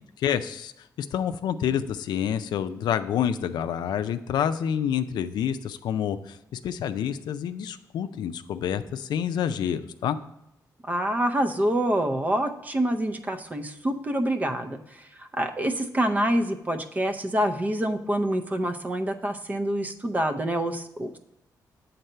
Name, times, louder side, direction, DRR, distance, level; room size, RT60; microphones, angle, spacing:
voice 1, 0.2-0.7 1.0-10.2, left 9 dB, 90° left, 10 dB, 0.4 m, -28 dB
voice 2, 10.8-21.2, right 1 dB, 25° right, 7 dB, 0.6 m, -26 dB
7.8 x 4.0 x 5.5 m, 0.84 s
cardioid pair, 120°, 7 cm